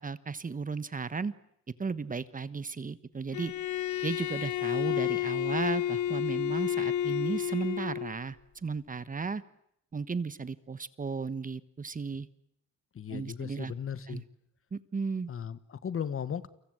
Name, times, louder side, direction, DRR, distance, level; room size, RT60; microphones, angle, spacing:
voice 1, 0.0-1.3 1.8-3.5 4.0-8.4 8.6-9.4 9.9-12.3 13.1-13.7 14.1-14.2 14.7-15.3, right 4 dB, 25° right, 14 dB, 1.2 m, -34 dB
Bowed string instrument, 3.3-8.2, left 11 dB, 70° left, 1.3 m, -31 dB
voice 2, 12.9-14.2 15.3-16.5, left 8 dB, 45° left, 14 dB, 1.4 m, -36 dB
30.0 x 24.0 x 7.9 m, 0.74 s
cardioid pair, 90°, 30 cm